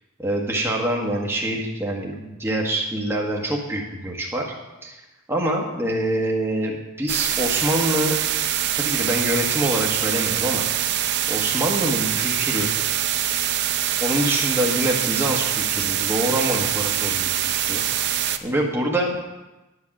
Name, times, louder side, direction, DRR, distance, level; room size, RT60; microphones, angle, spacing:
voice 1, 0.2-4.5 4.8-4.9 5.3-8.2 8.8-10.6 11.3-12.7 14.0-17.3 17.6-17.8 18.4-19.2, right 1 dB, 10° right, -2 dB, 1.4 m, -25 dB
sound 1, 7.1-18.4, right 11 dB, 55° right, 0.6 m, -24 dB
10.0 x 9.4 x 6.0 m, 1.1 s
head